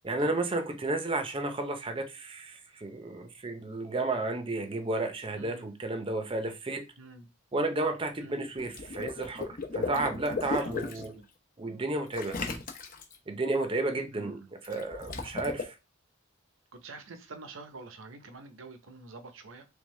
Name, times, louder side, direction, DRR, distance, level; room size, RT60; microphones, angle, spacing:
voice 1, 0.0-6.8 7.5-11.1 11.6-12.4 13.3-15.7, right 2 dB, 25° right, 0.6 m, -32 dB
voice 2, 5.3-5.7 7.0-7.3 8.2-8.4 9.8-10.1 10.5-11.3 14.1-14.5 16.7-19.6, right 3 dB, 80° right, 0.7 m, -47 dB
Water / Liquid, 8.6-11.1 12.1-13.2 14.6-15.6, left 4 dB, 45° left, 0.8 m, -35 dB
3.6 x 3.5 x 3.1 m
head